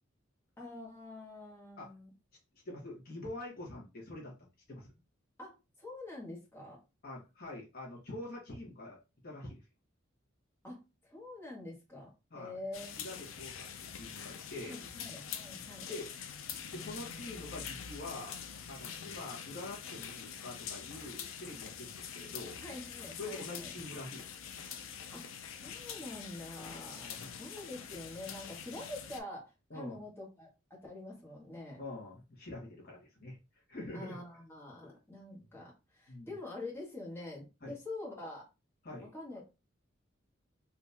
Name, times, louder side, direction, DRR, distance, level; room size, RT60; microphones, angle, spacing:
voice 1, 0.6-2.1 5.4-6.8 10.6-13.0 14.6-15.9 22.6-23.7 25.1-25.3 25.6-27.1 27.4-31.8 33.9-38.5 39.1-39.4, left 2 dB, 10° left, -4 dB, 1.3 m, -46 dB
voice 2, 2.6-4.3 4.7-4.9 7.0-9.0 9.2-9.6 12.3-12.6 13.0-13.7 13.9-14.8 15.9-16.1 16.7-18.4 18.7-22.6 23.2-24.3 27.0-27.3 29.7-30.0 31.8-33.4 33.7-34.2 36.1-36.4 37.6-37.7 38.8-39.1, left 2 dB, 50° left, -2 dB, 1.3 m, -45 dB
sound 1, 12.7-29.2, left 7 dB, 80° left, 0.5 m, -45 dB
3.5 x 2.8 x 2.8 m, 0.27 s
head